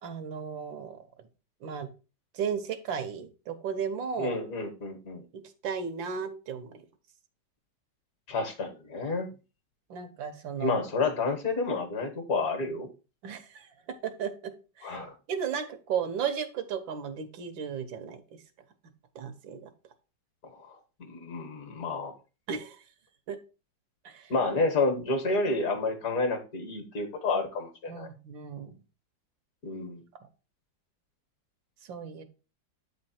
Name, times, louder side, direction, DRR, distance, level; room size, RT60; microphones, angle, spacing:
voice 1, 0.0-1.1 1.6-1.9 2.3-4.4 5.3-6.8 9.9-10.8 13.2-13.7 14.0-14.5 14.8-15.0 15.3-18.2 19.2-19.7 22.5-22.8 23.3-23.4 24.0-24.3 27.9-28.8 31.8-32.2, right 7 dB, 90° right, 9 dB, 1.7 m, -35 dB
voice 2, 4.2-5.2 8.3-9.3 10.6-12.9 14.8-15.1 20.4-22.1 24.3-28.1 29.6-30.0, left 3 dB, 55° left, 6 dB, 1.8 m, -30 dB
8.3 x 4.4 x 4.3 m, 0.32 s
omnidirectional pair, 2.0 m